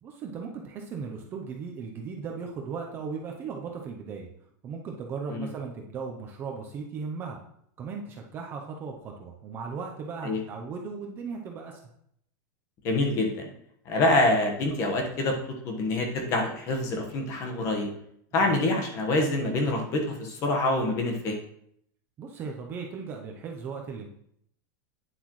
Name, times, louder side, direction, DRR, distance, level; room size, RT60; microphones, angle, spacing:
voice 1, 0.0-4.3 4.6-7.4 7.8-11.8 18.3-18.5 22.2-24.1, right 5 dB, 20° right, 1 dB, 0.6 m, -37 dB
voice 2, 12.8-13.5 13.8-15.4 15.6-17.9 18.3-21.4, left 2 dB, 25° left, 3 dB, 1.3 m, -26 dB
9.4 x 7.8 x 3.1 m, 0.71 s
supercardioid pair, 180°, 11 cm